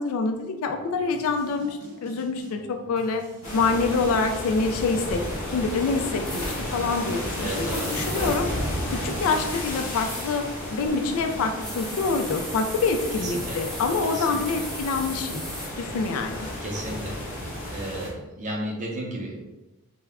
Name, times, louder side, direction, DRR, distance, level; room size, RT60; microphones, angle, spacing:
voice 1, 0.0-3.2 3.5-8.5 8.9-10.5 10.7-15.4 15.8-16.5, left 4 dB, 75° left, 6 dB, 0.3 m, -26 dB
sound 1, 0.7-13.6, right 1 dB, 90° right, 0.7 m, -47 dB
sound 2, 3.4-18.1, left 1 dB, 35° left, 0.7 m, -33 dB
sound 3, 6.2-6.6 7.7-8.4 10.0-10.3 11.6-15.7, equal, ahead, 0.6 m, -37 dB
voice 2, 7.4-8.4 13.1-13.6 14.1-14.5 16.6-17.2 17.7-19.4, right 1 dB, 35° right, -1 dB, 0.5 m, -34 dB
2.2 x 2.1 x 3.4 m, 1.0 s
head